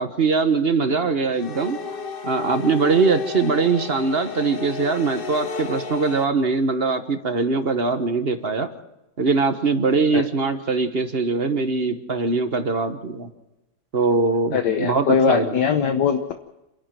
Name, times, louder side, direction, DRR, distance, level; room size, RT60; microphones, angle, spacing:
voice 1, 0.0-1.8 2.2-8.7 9.2-13.3 13.9-15.6, right 4 dB, 35° right, 9 dB, 1.3 m, -22 dB
sound 1, 1.3-6.2, left 5 dB, 45° left, 0.7 m, -32 dB
voice 2, 14.5-16.3, left 6 dB, 65° left, 7 dB, 1.6 m, -21 dB
27.5 x 11.5 x 9.2 m, 0.97 s
omnidirectional pair, 2.1 m